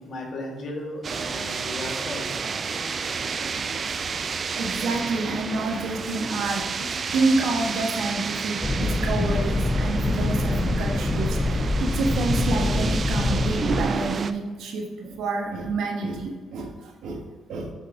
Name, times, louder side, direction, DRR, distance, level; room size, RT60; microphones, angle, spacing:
voice 1, 0.1-2.3, left 2 dB, 60° left, 0 dB, 1.5 m, -35 dB
sound 1, 1.0-14.3, right 5 dB, 45° right, 0.3 m, -31 dB
voice 2, 4.5-17.2 17.5-17.7, right 3 dB, 75° right, 1 dB, 1.0 m, -28 dB
sound 2, 8.6-13.9, left 2 dB, 20° left, 0.5 m, -24 dB
6.6 x 5.4 x 2.6 m, 1.4 s
cardioid pair, 90°, 0 cm